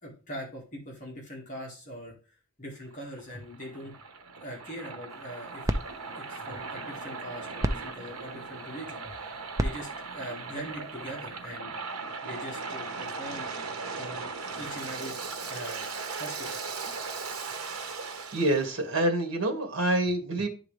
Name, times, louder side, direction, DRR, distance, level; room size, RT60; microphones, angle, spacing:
voice 1, 0.0-3.9 4.4-5.7 6.2-9.1 9.6-11.8 12.2-13.5 13.9-15.2 15.5-15.9 16.2-16.6, equal, 35° left, -2 dB, 1.9 m, -42 dB
Waves surf, 2.9-18.7, right 4 dB, 85° right, 1.0 m, -38 dB
sound 1, 5.1-11.5, right 1 dB, 15° right, 0.4 m, -36 dB
voice 2, 18.0-20.5, right 1 dB, 60° right, 4 dB, 1.8 m, -27 dB
11.0 x 3.7 x 3.3 m, 0.35 s
head